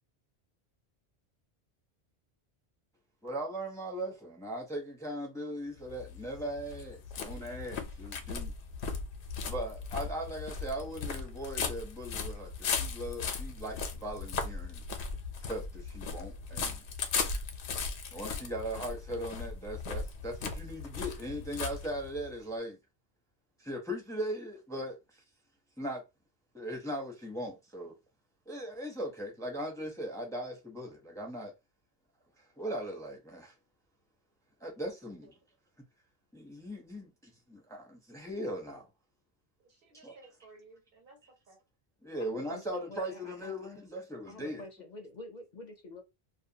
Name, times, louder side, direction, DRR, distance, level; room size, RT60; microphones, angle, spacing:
voice 1, 3.2-8.5 9.5-14.8 15.4-16.8 18.1-22.8 23.6-25.2 25.8-26.0 26.5-27.9 28.5-31.5 32.6-33.5 34.6-35.3 36.3-38.9 39.9-40.2 42.0-44.6, right 1 dB, 5° left, 0.5 m, -39 dB
sound 1, 5.8-22.3, left 5 dB, 90° left, 0.9 m, -37 dB
voice 2, 39.6-41.6, right 3 dB, 60° right, 0.9 m, -58 dB
voice 3, 42.2-43.8 44.3-46.0, left 2 dB, 50° left, 0.6 m, -48 dB
2.4 x 2.3 x 2.7 m
omnidirectional pair, 1.1 m